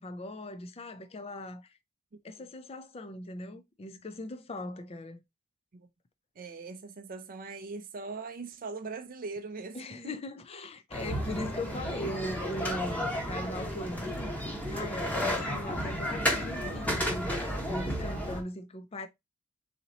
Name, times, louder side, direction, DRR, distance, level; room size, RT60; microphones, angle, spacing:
voice 1, 0.0-1.8 2.2-5.2 9.7-14.3 14.7-17.4 17.7-19.1, left 1 dB, 25° left, 0.4 m, -39 dB
voice 2, 6.4-10.1, right 4 dB, 40° right, 0.5 m, -40 dB
sound 1, 10.9-18.4, equal, 5° left, 1.0 m, -32 dB
4.1 x 2.9 x 3.8 m
head